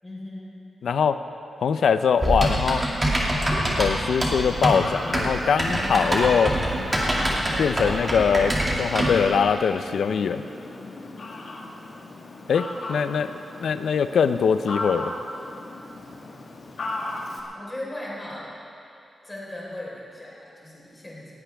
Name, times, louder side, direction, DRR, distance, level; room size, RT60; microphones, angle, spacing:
voice 1, 0.0-0.6 17.5-18.5 19.2-21.3, left 1 dB, 15° left, -6 dB, 4.3 m, -37 dB
voice 2, 0.8-1.2 1.6-2.8 3.8-6.5 7.6-10.4 12.5-15.1, left 6 dB, 85° left, 10 dB, 0.6 m, -22 dB
Typing, 2.2-9.2, right 1 dB, 20° right, 2.3 m, -24 dB
Fowl, 4.1-17.4, left 2 dB, 60° left, 1.8 m, -37 dB
19.0 x 16.5 x 3.5 m, 2.7 s
wide cardioid pair, 155°, 0 cm